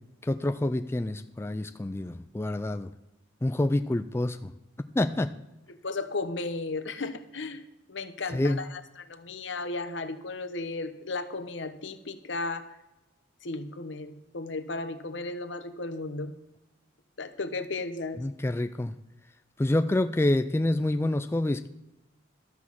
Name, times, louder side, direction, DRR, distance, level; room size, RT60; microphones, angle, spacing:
voice 1, 0.2-2.9 3.4-4.5 5.0-5.3 8.3-8.6 18.2-18.9 19.6-21.7, left 1 dB, 15° left, 9 dB, 0.3 m, -27 dB
voice 2, 5.8-7.6 7.9-12.7 13.4-16.3 17.2-18.2, left 3 dB, 75° left, 10 dB, 1.0 m, -35 dB
13.0 x 6.3 x 7.3 m, 0.93 s
head